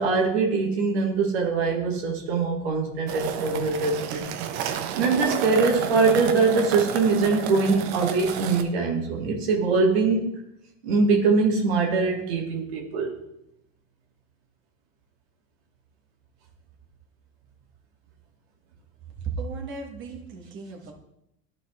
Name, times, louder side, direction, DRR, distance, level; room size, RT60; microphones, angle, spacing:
voice 1, 0.0-4.3 4.7-10.4 10.8-13.1, right 4 dB, 80° right, 0 dB, 2.0 m, -23 dB
sound 1, 3.1-8.6, right 9 dB, 55° right, 0.9 m, -31 dB
voice 2, 19.2-20.9, right 4 dB, 40° right, 1 dB, 1.5 m, -35 dB
11.0 x 4.2 x 3.6 m, 0.79 s
supercardioid pair, 110°, 31 cm